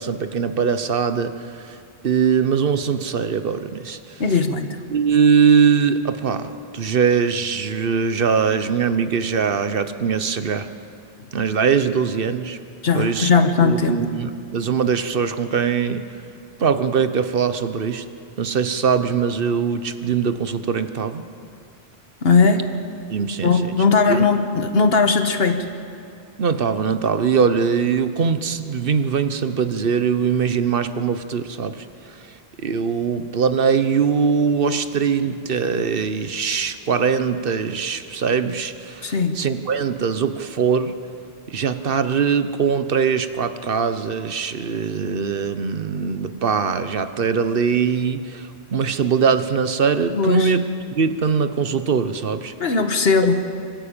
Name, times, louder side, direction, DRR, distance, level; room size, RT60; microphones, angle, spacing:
voice 1, 0.0-1.8 2.0-4.2 4.9-10.7 11.3-12.6 12.9-13.3 13.6-16.0 16.6-18.0 18.4-21.3 23.1-23.8 24.1-24.2 26.4-41.0 41.5-50.6 50.9-52.5, right 6 dB, 60° right, 10 dB, 1.0 m, -21 dB
voice 2, 4.2-4.8 12.8-14.0 22.2-22.6 23.4-25.7 39.0-39.4 50.1-50.5 52.6-53.3, left 4 dB, 70° left, 7 dB, 1.5 m, -18 dB
25.5 x 13.0 x 8.8 m, 2.4 s
omnidirectional pair, 1.1 m